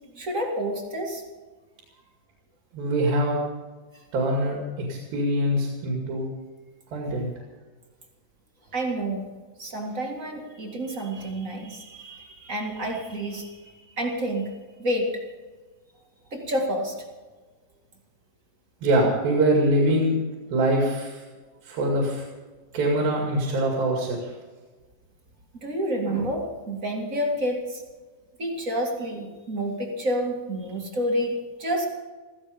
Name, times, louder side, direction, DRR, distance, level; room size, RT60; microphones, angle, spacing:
voice 1, 0.1-1.2 3.9-4.0 7.1-7.2 8.7-9.3 9.6-13.6 14.0-14.5 14.8-15.2 16.3-17.0 25.5-27.8 28.4-31.9, right 1 dB, 30° right, 1 dB, 2.0 m, -29 dB
voice 2, 2.7-3.4 4.1-6.3 6.9-7.3 18.8-20.2 20.5-21.2 21.6-22.3 22.7-24.3, right 1 dB, 85° right, -1 dB, 4.2 m, -23 dB
16.0 x 15.0 x 5.2 m, 1.3 s
omnidirectional pair, 4.0 m